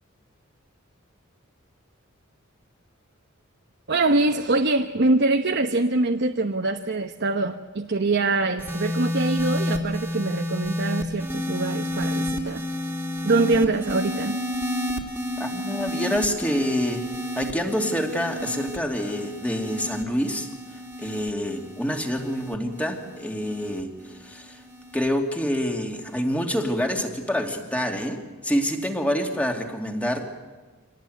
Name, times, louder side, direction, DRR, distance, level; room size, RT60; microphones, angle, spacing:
voice 1, 3.9-12.7 13.2-14.4, right 2 dB, 55° right, 5 dB, 1.0 m, -24 dB
sound 1, 8.6-25.1 26.0-26.3, left 1 dB, 10° right, 2.6 m, -31 dB
voice 2, 15.4-17.1 17.4-20.5 21.0-23.9 24.2-24.6 24.9-30.2, equal, 5° left, 2 dB, 2.6 m, -27 dB
26.0 x 19.0 x 9.3 m, 1.3 s
head